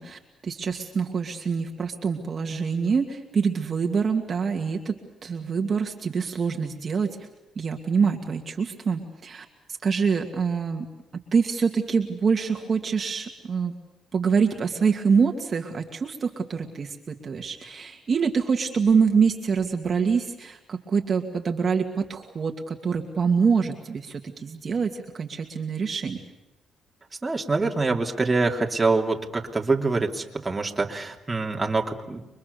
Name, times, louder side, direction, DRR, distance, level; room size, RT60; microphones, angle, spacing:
voice 1, 0.0-7.1 7.6-9.5 9.8-10.9 11.3-13.7 14.1-26.2, right 5 dB, 45° right, 3 dB, 2.3 m, -25 dB
voice 2, 27.2-32.2, right 3 dB, 20° right, 1 dB, 3.0 m, -25 dB
29.5 x 23.5 x 7.0 m, 1.0 s
cardioid pair, 90°, 0 cm